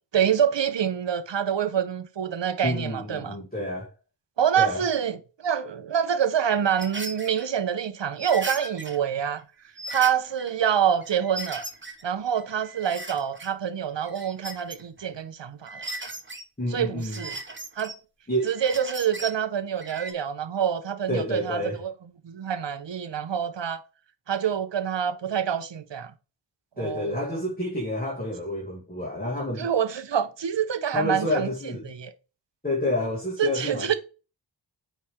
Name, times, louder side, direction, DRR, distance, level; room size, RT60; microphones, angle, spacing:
voice 1, 0.1-3.3 4.4-5.2 5.4-9.4 9.9-11.6 12.0-15.8 16.7-17.4 17.8-17.9 18.5-21.9 22.2-23.8 24.3-26.1 26.8-27.4 29.6-31.5 31.8-32.1 33.4-33.9, right 8 dB, 70° right, 0.9 m, -26 dB
voice 2, 2.6-3.9 4.6-4.8 16.6-17.2 18.3-18.5 21.1-21.8 26.8-29.7 30.9-31.9 32.6-34.0, left 1 dB, 20° left, 2.2 m, -29 dB
sound 1, 6.6-7.5 8.2-9.0 9.4-9.5 9.8-10.5 11.0-12.0 12.4-13.5 14.0-15.1 15.7-16.4 17.0-18.0 18.4-19.4 19.8-20.1, right 2 dB, 25° right, 1.2 m, -37 dB
8.7 x 3.4 x 3.6 m
wide cardioid pair, 55°, 45 cm